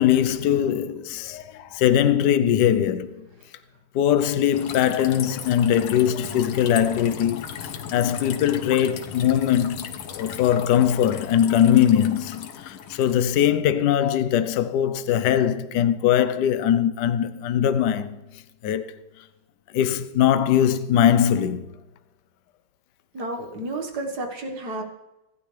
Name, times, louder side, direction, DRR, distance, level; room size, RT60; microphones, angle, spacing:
voice 1, 0.0-3.2 3.9-18.2 18.6-18.9 19.7-21.7, left 10 dB, 65° left, 1.2 m, -21 dB
sound 1, 4.5-13.4, left 8 dB, 85° left, 1.9 m, -37 dB
voice 2, 23.1-24.8, right 2 dB, 50° right, 2.1 m, -31 dB
25.0 x 11.5 x 3.3 m
omnidirectional pair, 2.3 m